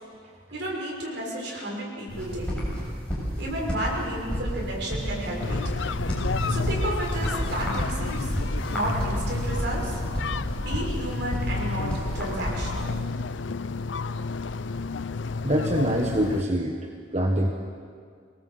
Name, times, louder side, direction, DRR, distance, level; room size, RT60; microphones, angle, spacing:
voice 1, 0.5-2.8 3.4-5.9 6.5-8.4 8.7-10.0 10.6-12.9, right 1 dB, 70° right, -2 dB, 6.2 m, -32 dB
sound 1, 2.1-13.0, equal, 5° left, 7.0 m, -30 dB
sound 2, 5.4-16.4, left 4 dB, 80° left, 0.6 m, -32 dB
voice 2, 15.4-16.8 17.1-17.5, equal, 35° right, 1 dB, 1.4 m, -24 dB
24.5 x 19.0 x 8.0 m, 2.1 s
head